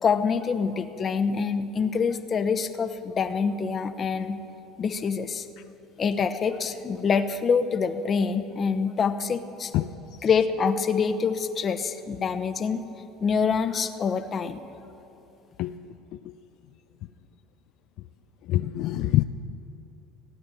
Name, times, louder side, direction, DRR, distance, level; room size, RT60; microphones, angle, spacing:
voice 1, 0.0-4.4 4.8-5.5 6.0-9.7 10.2-12.8 13.2-14.6, left 5 dB, 35° left, 10 dB, 0.9 m, -26 dB
voice 2, 18.4-19.2, left 15 dB, 65° left, 9 dB, 0.4 m, -25 dB
16.0 x 9.4 x 7.6 m, 2.9 s
supercardioid pair, 85°, 0 cm